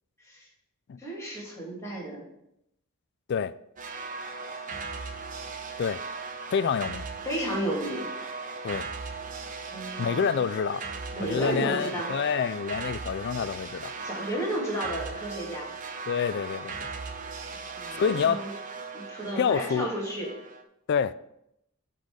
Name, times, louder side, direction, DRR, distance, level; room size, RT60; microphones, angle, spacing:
voice 1, 1.0-2.2 7.2-8.1 8.3-8.7 9.7-10.4 11.1-12.1 14.0-15.7 17.5-18.5 18.9-20.3, right 1 dB, 15° left, 2.8 m, -33 dB
sound 1, 3.8-20.6, right 4 dB, 40° right, 0.7 m, -38 dB
voice 2, 6.5-7.1 8.6-8.9 10.0-10.9 11.2-13.9 16.1-16.8 18.0-18.4 19.3-19.9 20.9-21.1, left 6 dB, 50° left, 0.3 m, -27 dB
8.4 x 4.1 x 6.4 m
head